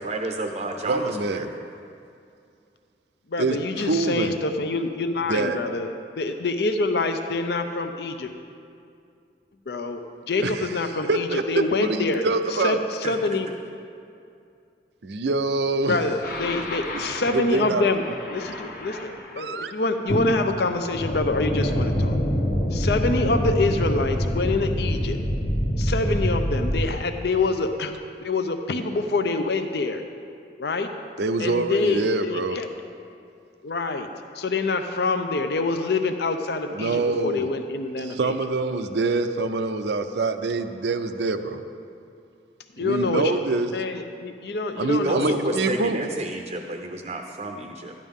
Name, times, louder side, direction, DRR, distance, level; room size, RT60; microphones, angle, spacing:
voice 1, 0.0-1.4 12.2-12.4 13.0-13.4 45.0-47.9, right 2 dB, 35° right, 3 dB, 0.6 m, -30 dB
voice 2, 0.9-1.5 3.4-4.4 5.3-5.6 10.4-12.8 15.0-16.0 17.3-17.8 19.4-19.7 31.2-32.6 36.7-37.5 38.0-41.6 42.8-43.7 44.8-46.0, right 3 dB, 80° right, 9 dB, 0.5 m, -25 dB
voice 3, 3.3-5.9 6.2-8.3 9.7-10.0 10.3-12.3 12.6-12.8 13.1-13.5 15.9-18.0 18.3-22.2 22.7-25.2 25.8-27.9 28.2-30.0 30.6-30.9 31.4-32.7 33.6-34.1 34.4-38.3 42.8-43.4 43.7-45.8 46.1-46.2, left 3 dB, 70° left, 6 dB, 0.6 m, -26 dB
sound 1, 16.2-19.4 20.1-26.9, equal, 55° left, 1.0 m, -26 dB
13.5 x 10.5 x 3.7 m, 2.4 s
head